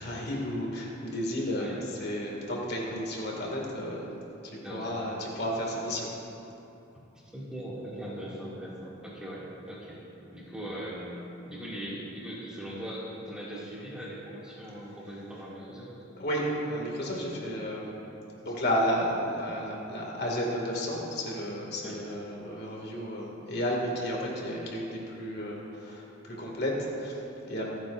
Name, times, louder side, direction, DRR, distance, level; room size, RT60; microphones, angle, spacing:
voice 1, 0.0-1.7 2.0-4.1 4.4-6.1 16.2-17.9 18.4-27.7, equal, 55° left, -2 dB, 2.2 m, -32 dB
voice 2, 4.6-5.0 7.3-10.0 10.3-15.9 21.8-22.0, equal, 5° right, -8 dB, 2.3 m, -40 dB
26.5 x 9.3 x 2.6 m, 2.9 s
head